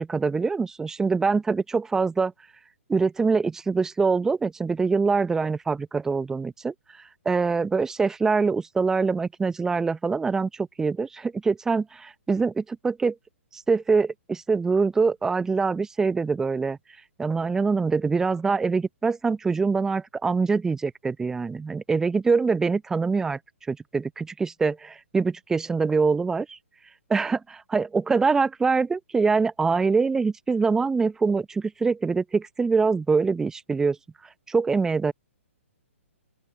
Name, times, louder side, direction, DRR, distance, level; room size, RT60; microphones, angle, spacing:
voice 1, 0.0-2.3 2.9-6.7 7.3-13.2 13.5-16.8 17.2-23.4 23.7-26.6 27.1-34.0 34.5-35.1, right 4 dB, 5° right, 0.6 m, -24 dB
open air
figure-of-eight pair, 125°, 7 cm